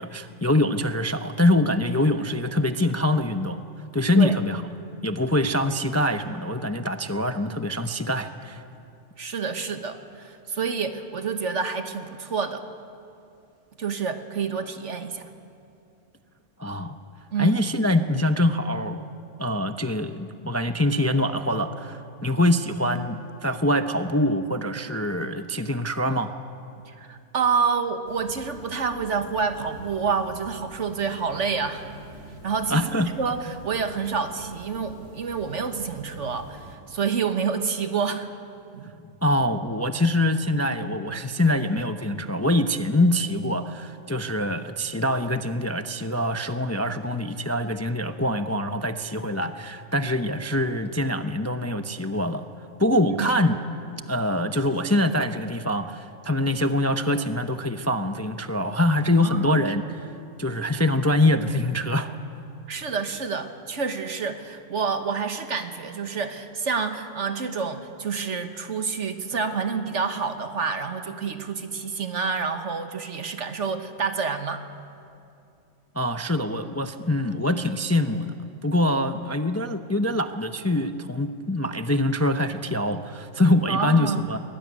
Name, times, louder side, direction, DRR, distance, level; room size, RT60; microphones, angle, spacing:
voice 1, 0.0-3.6 3.9-4.6 5.0-8.6 16.6-17.0 17.4-19.0 19.4-26.3 32.7-33.1 39.2-52.4 52.8-53.6 54.1-59.8 60.4-62.1 75.9-78.3 78.6-84.4, left 1 dB, 15° left, 8 dB, 0.6 m, -24 dB
voice 2, 9.2-12.6 13.8-15.3 17.3-17.6 26.9-31.9 32.4-38.3 38.7-38.9 53.2-53.4 59.2-59.7 62.7-74.7 83.7-84.3, right 5 dB, 65° right, 7 dB, 1.6 m, -28 dB
sound 1, 28.1-36.8, equal, 60° left, 3.3 m, -45 dB
23.0 x 19.5 x 9.5 m, 2.6 s
omnidirectional pair, 1.3 m